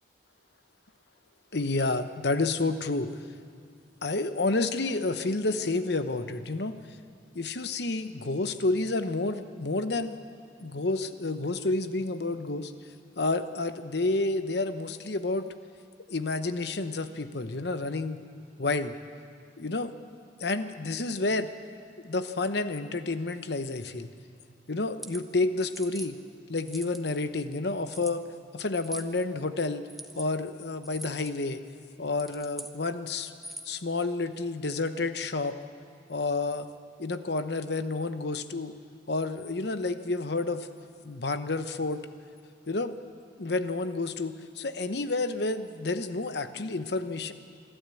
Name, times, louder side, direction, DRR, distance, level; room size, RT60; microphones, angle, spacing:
voice 1, 1.5-3.1 4.0-6.7 7.3-10.2 10.6-12.7 13.2-15.5 16.1-18.2 18.6-18.9 19.6-19.9 20.4-21.5 22.0-24.1 24.7-26.2 26.5-28.2 28.5-29.8 30.2-31.6 32.0-33.3 33.7-35.6 36.1-36.7 37.0-38.7 39.1-40.7 41.0-42.0 42.7-43.0 43.4-47.3, left 3 dB, 60° left, 10 dB, 0.9 m, -30 dB
sound 1, 24.8-25.2 25.7-26.1 26.6-27.2 27.9-28.1 28.8-29.1 29.9-30.3 30.8-31.3 32.1-32.8 33.3-33.8, right 1 dB, ahead, 0.9 m, -42 dB
25.0 x 12.5 x 8.4 m, 2.2 s
head